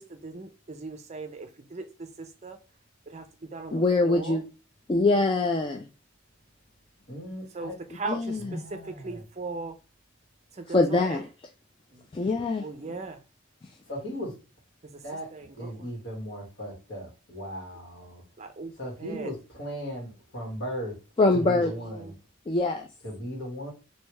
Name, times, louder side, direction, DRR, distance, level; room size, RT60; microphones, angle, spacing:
voice 1, 0.0-2.6 3.1-4.4 7.5-9.7 10.5-11.3 11.9-13.2 14.8-15.0 15.3-15.9 18.4-18.7 19.0-19.3 21.4-22.2, right 3 dB, 35° right, 0.5 m, -39 dB
voice 2, 3.7-4.4 4.9-5.9 8.1-8.6 10.7-11.3 12.1-12.6 21.2-21.7 22.5-22.9, left 2 dB, 25° left, 0.3 m, -23 dB
voice 3, 7.1-7.7 8.5-9.2 13.9-14.3 15.0-15.3 15.6-18.2 18.8-21.0 21.3-22.1 23.0-23.7, equal, 65° left, 1.7 m, -37 dB
3.3 x 2.7 x 3.1 m
head